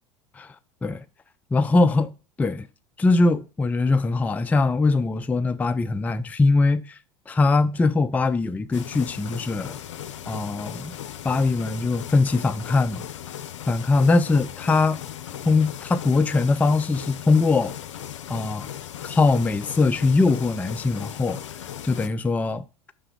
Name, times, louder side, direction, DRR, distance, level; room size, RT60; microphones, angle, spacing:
voice 1, 1.5-2.1 2.4-2.7 3.0-7.0 7.3-9.8 10.3-11.0 11.2-13.1 13.7-15.0 15.5-17.7 18.3-18.7 19.0-21.4 21.8-22.6, left 3 dB, 10° left, 0.3 m, -21 dB
sound 1, 8.7-22.1, left 10 dB, 85° left, 0.5 m, -37 dB
5.9 x 3.3 x 4.9 m
hypercardioid pair, 80°, 15 cm